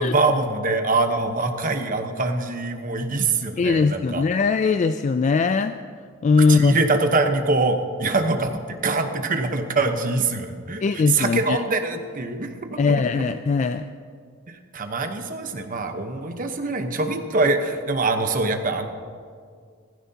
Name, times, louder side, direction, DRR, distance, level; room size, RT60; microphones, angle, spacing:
voice 1, 0.0-4.2 6.5-8.5 8.8-13.0 14.7-18.9, right 3 dB, 40° right, 6 dB, 1.0 m, -24 dB
voice 2, 3.6-5.7 6.2-6.7 10.8-11.6 12.8-13.8, left 4 dB, 35° left, 10 dB, 0.3 m, -20 dB
16.5 x 15.5 x 2.8 m, 2.1 s
head